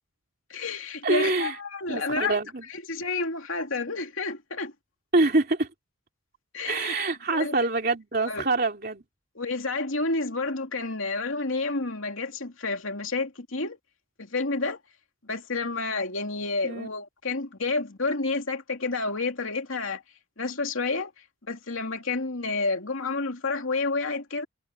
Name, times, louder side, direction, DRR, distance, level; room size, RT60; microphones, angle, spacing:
voice 1, 0.5-2.4 2.7-4.7 6.5-6.9 7.3-7.5 8.3-8.4 9.3-13.8 14.2-14.8 15.2-20.0 20.4-21.1 21.5-24.5, left 3 dB, 75° left, 2.7 m, -30 dB
voice 2, 1.0-1.6 1.9-2.6 5.1-5.7 6.6-9.0 16.6-16.9, right 2 dB, 45° right, 3.0 m, -25 dB
head